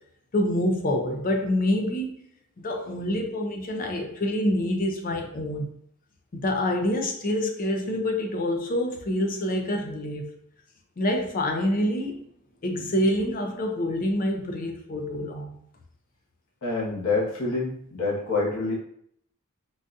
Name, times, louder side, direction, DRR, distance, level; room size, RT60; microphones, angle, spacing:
voice 1, 0.3-2.1 2.6-5.7 6.3-10.3 11.0-12.2 12.6-15.6, left 1 dB, 40° left, 3 dB, 0.4 m, -26 dB
voice 2, 16.6-18.7, left 3 dB, 60° left, -6 dB, 1.0 m, -27 dB
3.8 x 2.3 x 2.5 m, 0.67 s
head